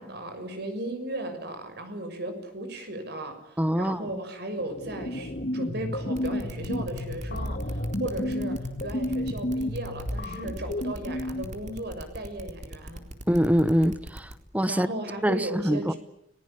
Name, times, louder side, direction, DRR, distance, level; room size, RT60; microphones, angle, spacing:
voice 1, 0.0-13.0 14.7-16.0, right 1 dB, 60° right, 6.6 m, -36 dB
voice 2, 3.6-4.2 13.3-14.9 15.2-15.9, equal, 10° right, 1.0 m, -24 dB
sound 1, 4.6-11.7, left 1 dB, 50° left, 2.1 m, -32 dB
sound 2, 6.1-14.3, right 1 dB, 40° right, 4.0 m, -40 dB
30.0 x 21.0 x 8.7 m
head